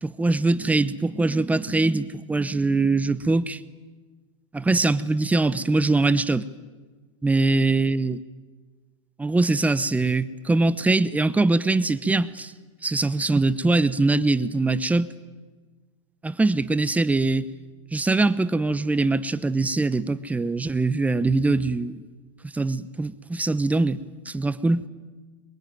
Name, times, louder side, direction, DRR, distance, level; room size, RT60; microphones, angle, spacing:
voice 1, 0.0-3.6 4.5-6.5 7.2-8.2 9.2-12.5 12.8-15.1 16.2-17.5 17.9-22.0 22.4-24.0 24.3-24.8, right 3 dB, 10° right, 0.9 m, -22 dB
23.0 x 22.5 x 9.3 m
hypercardioid pair, 115°, 16 cm